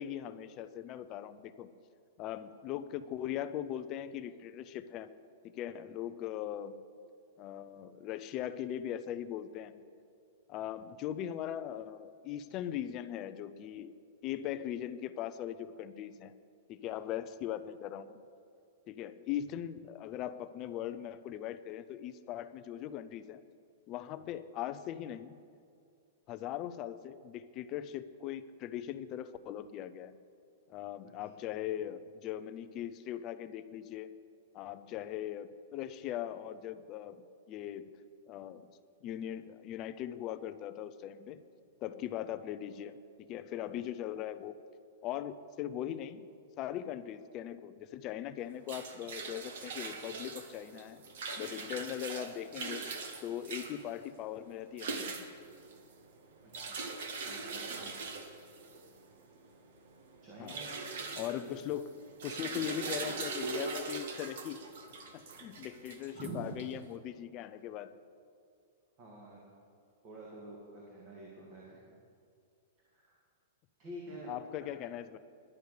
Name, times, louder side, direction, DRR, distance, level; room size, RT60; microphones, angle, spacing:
voice 1, 0.0-1.7 2.2-5.2 5.5-6.8 7.4-9.9 10.5-13.9 14.2-16.3 16.7-18.2 18.8-23.4 23.9-25.4 26.3-30.2 30.7-34.1 34.5-38.0 38.3-38.7 39.0-41.4 41.8-43.0 43.3-44.6 45.0-51.0 51.4-52.8 53.2-55.3 60.4-60.6 61.1-64.6 65.1-68.0 74.1-75.2, left 11 dB, 25° left, 12 dB, 0.4 m, -40 dB
sound 1, 48.4-66.9, right 4 dB, 55° right, 1.2 m, -42 dB
voice 2, 56.4-56.8 57.2-57.9 60.2-60.7 61.2-61.6 66.1-66.5 69.0-69.4 70.0-72.0 72.9-73.2 73.8-74.3 74.6-74.7, right 2 dB, 25° right, -4 dB, 1.9 m, -48 dB
11.0 x 10.0 x 6.5 m, 2.3 s
supercardioid pair, 175°, 0 cm